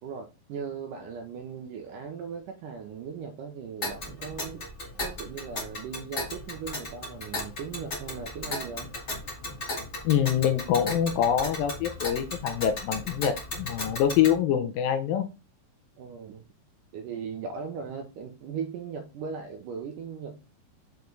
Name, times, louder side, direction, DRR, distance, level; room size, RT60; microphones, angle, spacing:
voice 1, 0.0-4.7 5.0-8.9 16.0-16.5 16.9-20.4, right 6 dB, 75° right, 3 dB, 2.0 m, -38 dB
Tick, 3.8-14.4, left 1 dB, 40° left, 0.9 m, -36 dB
voice 2, 10.0-15.3, left 9 dB, 75° left, 7 dB, 2.2 m, -25 dB
6.9 x 4.9 x 3.9 m, 0.28 s
omnidirectional pair, 4.7 m